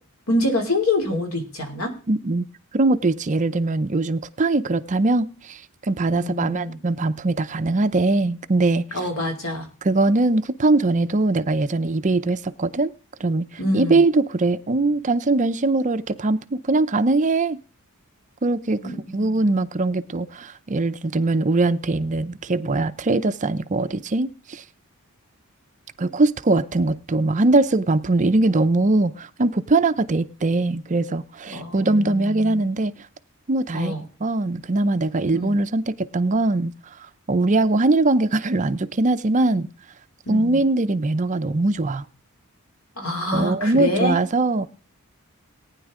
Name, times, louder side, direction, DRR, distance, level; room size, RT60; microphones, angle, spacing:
voice 1, 0.3-1.9 6.1-6.8 8.9-9.7 13.6-14.0 18.8-19.6 31.5-32.7 33.7-34.0 35.3-35.5 40.3-40.6 43.0-44.2, left 1 dB, 75° left, 2.9 m, -26 dB
voice 2, 2.1-2.5 2.7-9.0 9.8-12.9 13.2-13.5 13.7-17.6 18.4-18.8 19.1-24.6 26.0-32.9 33.5-33.9 34.2-36.7 37.3-39.7 40.3-42.0 43.3-44.7, right 2 dB, 35° right, 0.5 m, -21 dB
19.0 x 9.6 x 3.7 m
head